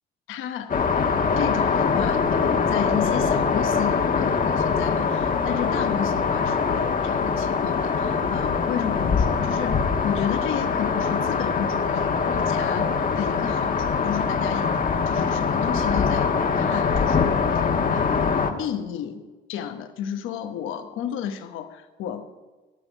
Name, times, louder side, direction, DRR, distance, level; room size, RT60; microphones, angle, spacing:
voice 1, 0.3-0.9 1.4-22.3, left 9 dB, 85° left, 8 dB, 1.0 m, -32 dB
sound 1, 0.7-18.5, left 5 dB, 45° left, 1.2 m, -23 dB
13.5 x 6.3 x 8.1 m, 1.3 s
cardioid pair, 90°, 20 cm